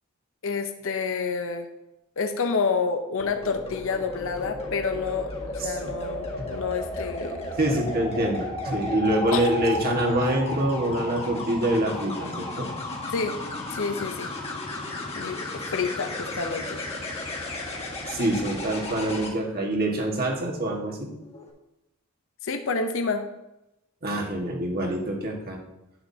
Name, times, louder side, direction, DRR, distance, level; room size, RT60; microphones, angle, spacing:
voice 1, 0.4-1.7 2.2-7.5 9.3-9.4 13.1-13.4 13.7-14.3 15.2-16.8 22.4-23.3, left 4 dB, 65° left, 6 dB, 0.7 m, -29 dB
sound 1, 3.2-19.3 21.2-21.5, left 2 dB, 30° left, 1.8 m, -34 dB
voice 2, 5.6-5.9 6.4-6.5 7.6-12.7 18.1-21.1 24.0-25.6, right 1 dB, 45° right, 1 dB, 1.6 m, -26 dB
11.0 x 8.2 x 2.8 m, 0.91 s
head